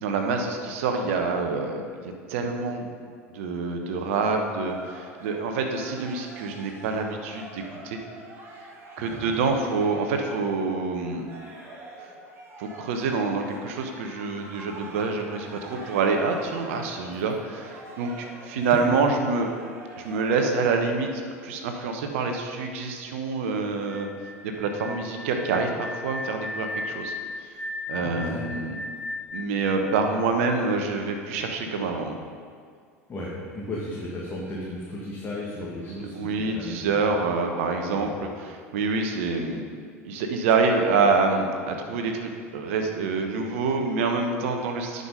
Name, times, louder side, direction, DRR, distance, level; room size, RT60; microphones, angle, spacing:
voice 1, 0.0-2.9 3.3-8.0 9.0-11.3 12.6-19.5 20.0-24.1 24.4-27.1 27.4-27.6 27.9-28.8 29.3-32.2 35.9-38.1 38.4-39.6 40.0-45.1, right 4 dB, 60° right, 4 dB, 1.0 m, -26 dB
sound 1, 4.7-10.7 11.0-20.2, right 2 dB, 30° right, 1.8 m, -45 dB
sound 2, 23.8-30.7, left 2 dB, 80° left, 1.5 m, -36 dB
voice 2, 28.0-28.6 33.1-37.0 37.9-38.1, left 1 dB, 25° left, -6 dB, 1.7 m, -35 dB
9.8 x 5.4 x 5.4 m, 2.1 s
figure-of-eight pair, 75°, 8 cm